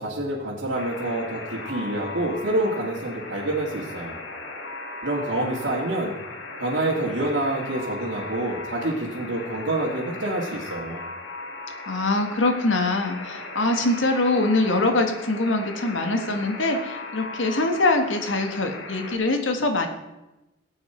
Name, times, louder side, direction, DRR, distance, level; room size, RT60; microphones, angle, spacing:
voice 1, 0.0-4.2 5.0-6.1 6.5-11.0, right 1 dB, 75° right, -6 dB, 2.2 m, -27 dB
Alarm, 0.8-19.1, left 2 dB, 75° left, 1.9 m, -37 dB
voice 2, 11.9-19.9, left 2 dB, 90° left, 5 dB, 1.7 m, -23 dB
18.0 x 8.6 x 4.5 m, 0.99 s
head